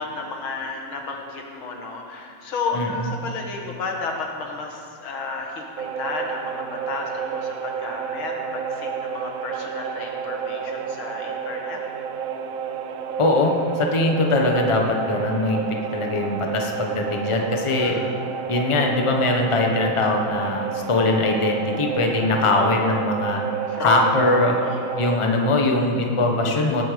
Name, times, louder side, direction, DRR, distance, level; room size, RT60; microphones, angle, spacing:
voice 1, 0.0-11.8 17.8-18.1 22.5-23.0 23.7-24.0 24.6-25.0, left 4 dB, 85° left, 1 dB, 2.4 m, -32 dB
voice 2, 2.7-3.1 13.2-18.0 18.5-23.4 23.8-24.6 25.0-26.8, left 2 dB, 20° left, 1 dB, 1.1 m, -21 dB
sound 1, 5.8-25.2, right 7 dB, 75° right, 0.7 m, -30 dB
18.0 x 8.7 x 5.2 m, 2.3 s
omnidirectional pair, 2.2 m